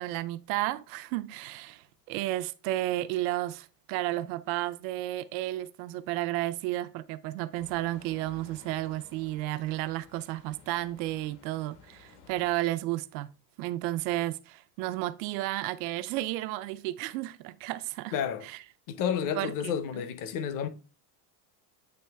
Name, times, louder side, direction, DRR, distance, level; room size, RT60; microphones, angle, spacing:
voice 1, 0.0-13.3 13.6-18.1 18.4-18.6 19.4-20.1, right 16 dB, 85° right, 0.7 m, -32 dB
sound 1, 7.5-12.5, left 5 dB, 75° left, 1.6 m, -56 dB
voice 2, 18.1-18.4 18.9-20.7, left 8 dB, 40° left, 0.7 m, -30 dB
9.0 x 3.1 x 3.4 m
cardioid pair, 170°, 50 cm